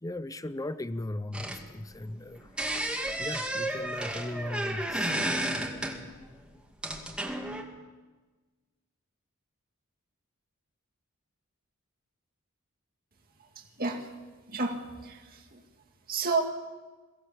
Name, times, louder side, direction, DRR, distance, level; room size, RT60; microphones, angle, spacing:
voice 1, 0.0-2.5 3.2-5.1, left 1 dB, 15° left, 14 dB, 0.7 m, -37 dB
sound 1, 1.3-2.2 2.6-6.3 6.8-7.6, right 1 dB, 5° right, 2.2 m, -32 dB
voice 2, 13.4-14.1 14.5-15.6 16.1-16.4, right 3 dB, 45° right, 2 dB, 2.1 m, -32 dB
23.0 x 16.5 x 7.3 m, 1.3 s
head